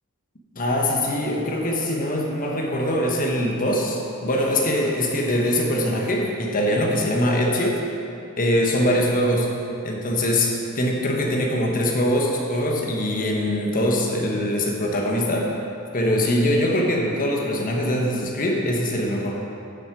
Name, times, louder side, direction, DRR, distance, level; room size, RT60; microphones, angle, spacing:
voice 1, 0.5-7.8 8.4-9.5 9.8-15.5 15.9-19.4, left 1 dB, 40° left, -1 dB, 1.3 m, -22 dB
9.8 x 7.5 x 4.6 m, 2.7 s
head